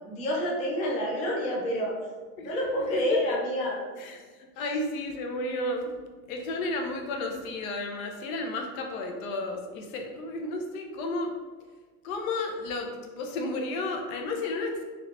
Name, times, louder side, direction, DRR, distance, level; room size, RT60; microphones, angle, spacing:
voice 1, 0.0-2.0 2.4-3.8 4.6-4.8, equal, 20° left, -3 dB, 0.3 m, -29 dB
voice 2, 4.0-5.9 6.3-11.3 12.0-14.8, left 2 dB, 65° left, 3 dB, 0.7 m, -32 dB
3.2 x 3.1 x 2.5 m, 1.4 s
supercardioid pair, 120°, 45 cm